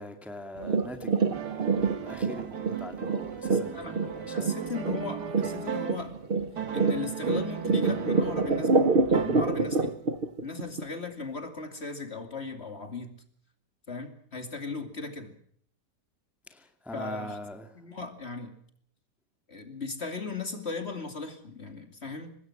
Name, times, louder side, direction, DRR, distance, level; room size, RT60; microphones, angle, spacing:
voice 1, 0.0-4.5 16.5-17.7, left 1 dB, ahead, 6 dB, 2.1 m, -42 dB
sound 1, 0.6-10.8 11.2-11.3, right 4 dB, 35° right, 1.1 m, -26 dB
sound 2, 1.3-6.2 6.5-9.9, right 8 dB, 75° right, 2.2 m, -37 dB
voice 2, 3.4-3.9 4.3-6.1 6.7-10.0 10.4-13.1 13.9-15.3 16.9-17.4 17.7-18.5 19.5-22.3, left 4 dB, 35° left, 7 dB, 2.9 m, -37 dB
25.0 x 20.0 x 6.0 m, 0.62 s
omnidirectional pair, 1.8 m